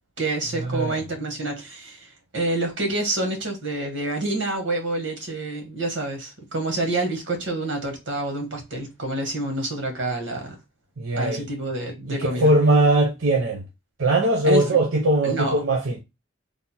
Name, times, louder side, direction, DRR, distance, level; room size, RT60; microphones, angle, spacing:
voice 1, 0.2-10.5 11.2-12.5 14.4-14.8 15.2-15.7, right 2 dB, 70° right, 1.3 m, -28 dB
voice 2, 11.0-11.4 12.1-13.6 14.0-16.0, right 2 dB, 85° right, 0.7 m, -20 dB
3.4 x 2.0 x 4.2 m
head